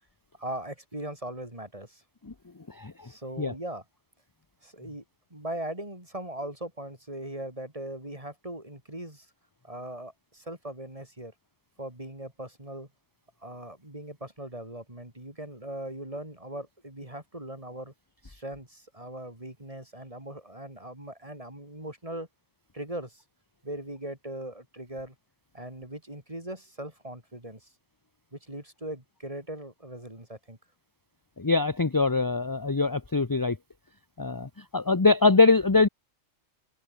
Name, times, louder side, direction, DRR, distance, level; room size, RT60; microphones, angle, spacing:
voice 1, 0.4-2.0 3.0-3.8 4.6-5.0 5.3-9.3 9.6-11.3 11.8-12.9 13.4-17.9 18.2-22.3 22.7-23.2 23.6-25.1 25.5-27.7 28.3-30.6, right 1 dB, 25° right, 5.1 m, -39 dB
voice 2, 31.4-33.6 34.2-35.9, left 3 dB, 20° left, 0.7 m, -23 dB
omnidirectional pair, 1.3 m